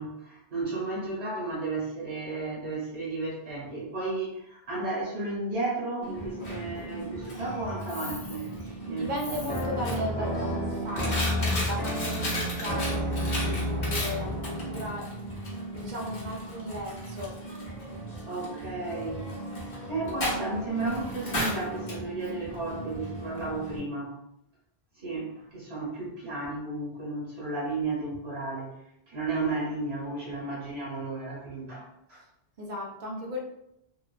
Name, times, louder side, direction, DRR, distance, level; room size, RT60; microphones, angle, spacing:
voice 1, 0.0-8.5 8.8-9.4 18.3-19.3 19.9-24.1 25.0-28.7 29.1-31.8 32.1-32.2, right 2 dB, 80° right, -6 dB, 1.3 m, -33 dB
Coin (dropping), 6.0-23.8, equal, 50° left, 0.8 m, -36 dB
voice 2, 8.6-15.1 15.7-17.3 32.6-33.4, equal, 55° right, 0 dB, 0.7 m, -36 dB
sound 1, 9.5-15.0, left 1 dB, 10° left, 0.6 m, -30 dB
2.8 x 2.2 x 2.3 m, 0.80 s
omnidirectional pair, 1.1 m